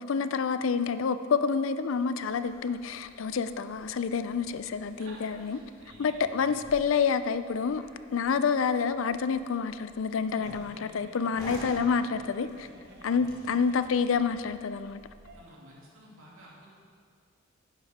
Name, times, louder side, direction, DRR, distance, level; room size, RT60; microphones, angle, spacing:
voice 1, 0.0-5.6 6.0-12.7 13.0-15.0, left 5 dB, 70° left, 12 dB, 0.4 m, -28 dB
sound 1, 2.2-15.4, equal, 15° left, 2.0 m, -52 dB
voice 2, 5.0-6.7 11.6-11.8 13.1-13.7 15.3-16.7, right 1 dB, 85° right, -5 dB, 2.6 m, -52 dB
Giggle, 10.3-14.5 14.9-15.0 15.2-15.4, right 1 dB, 55° right, 1.0 m, -53 dB
10.5 x 10.0 x 3.6 m, 2.1 s
head